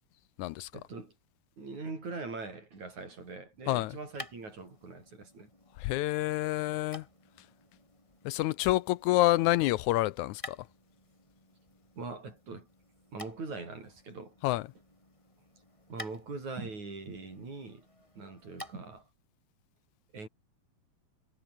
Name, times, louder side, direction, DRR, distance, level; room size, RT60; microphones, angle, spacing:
voice 1, 0.7-1.1 1.6-5.5 12.0-12.7 13.1-14.3 15.9-17.9 18.2-19.0 20.1-20.3, right 3 dB, 65° right, 8.6 m, -42 dB
sound 1, 3.5-19.1, left 1 dB, 10° left, 5.7 m, -52 dB
voice 2, 5.8-7.0 8.3-10.6 14.4-14.6, left 17 dB, 80° left, 1.9 m, -28 dB
omnidirectional pair, 3.6 m